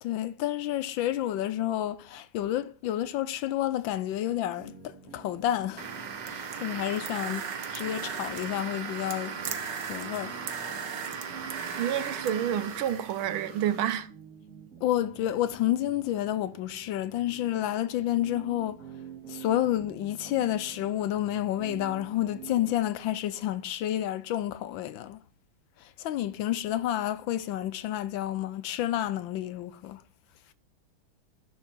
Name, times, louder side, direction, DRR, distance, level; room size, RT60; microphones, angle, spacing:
voice 1, 0.0-10.4 14.8-18.9 19.3-25.2 25.8-30.0, left 12 dB, 75° left, 1.2 m, -30 dB
sound 1, 4.6-22.7, right 7 dB, 45° right, 1.9 m, -48 dB
sound 2, 5.8-14.0, right 6 dB, 60° right, 1.6 m, -37 dB
voice 2, 11.8-14.1, right 10 dB, 75° right, 1.6 m, -29 dB
11.0 x 7.1 x 4.6 m
omnidirectional pair, 2.3 m